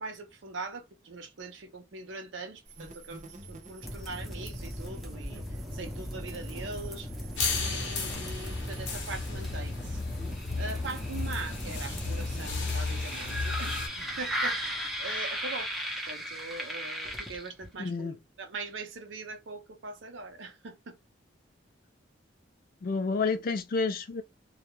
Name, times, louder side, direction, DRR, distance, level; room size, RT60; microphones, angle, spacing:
voice 1, 0.0-3.2 3.5-7.1 7.5-10.0 10.6-15.7 16.1-21.0, right 3 dB, 85° right, 0.6 m, -42 dB
sound 1, 2.7-9.4, right 2 dB, 40° right, 0.7 m, -50 dB
sound 2, 3.8-17.7, equal, ahead, 0.6 m, -37 dB
sound 3, 7.4-13.9, left 4 dB, 70° left, 0.8 m, -34 dB
voice 2, 17.8-18.2 22.8-24.2, left 4 dB, 50° left, 0.4 m, -29 dB
2.3 x 2.0 x 2.9 m
head